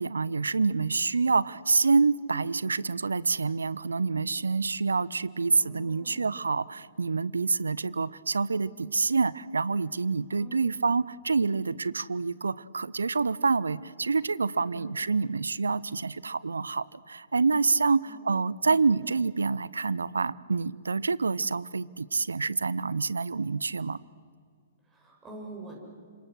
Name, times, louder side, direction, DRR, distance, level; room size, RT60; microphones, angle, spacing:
voice 1, 0.0-24.0, right 4 dB, 75° right, 21 dB, 0.7 m, -27 dB
voice 2, 5.6-6.5 10.4-10.9 14.7-15.4 18.0-18.6 19.0-19.1 24.8-25.8, right 2 dB, 20° right, -1 dB, 7.1 m, -47 dB
29.5 x 26.5 x 6.3 m, 2.2 s
figure-of-eight pair, 115°, 0 cm